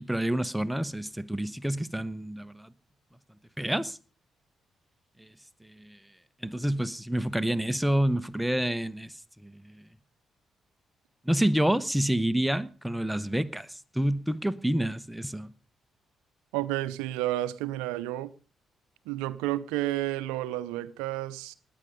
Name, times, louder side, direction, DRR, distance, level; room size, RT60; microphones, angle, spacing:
voice 1, 0.0-2.7 3.6-4.0 5.2-5.3 5.6-6.0 6.4-9.8 11.2-15.5, right 1 dB, 5° right, 1.0 m, -28 dB
voice 2, 16.5-18.3 19.1-21.5, right 15 dB, 80° right, 0.6 m, -31 dB
19.5 x 9.1 x 5.2 m
hypercardioid pair, 45°, 0 cm